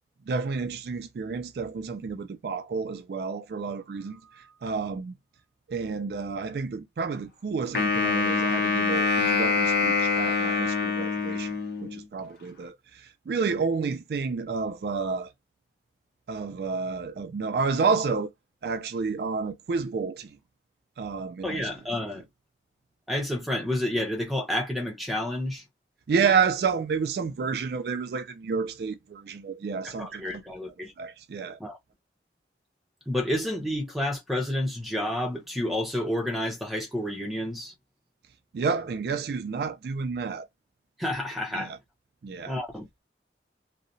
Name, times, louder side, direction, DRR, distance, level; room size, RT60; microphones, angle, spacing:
voice 1, 0.3-5.1 5.7-15.3 16.3-18.3 18.6-20.4 21.0-21.7 26.1-30.4 31.0-31.6 38.5-40.5 41.5-41.8 42.2-42.6, right 5 dB, 65° right, 0.3 m, -30 dB
Wind instrument woodwind instrument, 7.7-12.0, left 4 dB, 60° left, 0.8 m, -25 dB
voice 2, 21.4-22.2 23.1-25.6 29.8-30.9 31.6-31.8 33.1-37.7 41.0-41.7 42.5-42.9, left 1 dB, ahead, 0.6 m, -30 dB
2.7 x 2.1 x 2.6 m
head